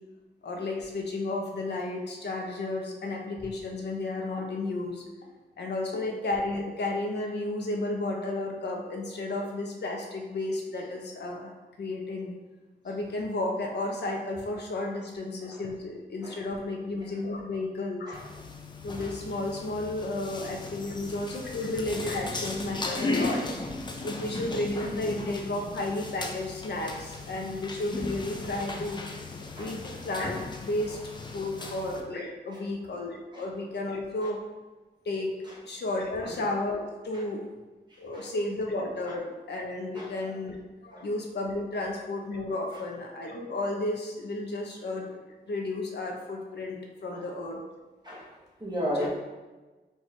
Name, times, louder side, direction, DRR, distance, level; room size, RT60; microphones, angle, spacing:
voice 1, 0.4-5.0 5.6-11.5 11.8-12.3 12.8-18.2 18.8-23.4 24.0-29.0 29.6-31.0 31.3-34.4 35.0-35.3 35.6-37.4 38.0-45.2 45.5-47.6 49.0-49.1, left 2 dB, 75° left, 1 dB, 0.7 m, -32 dB
sound 1, 18.1-32.0, left 3 dB, 25° left, 0.4 m, -36 dB
voice 2, 37.9-38.3 39.9-40.1 40.9-41.1 47.1-47.3 48.0-48.3 48.6-49.1, equal, 25° right, -6 dB, 1.1 m, -36 dB
4.6 x 2.4 x 4.1 m, 1.2 s
wide cardioid pair, 175°, 18 cm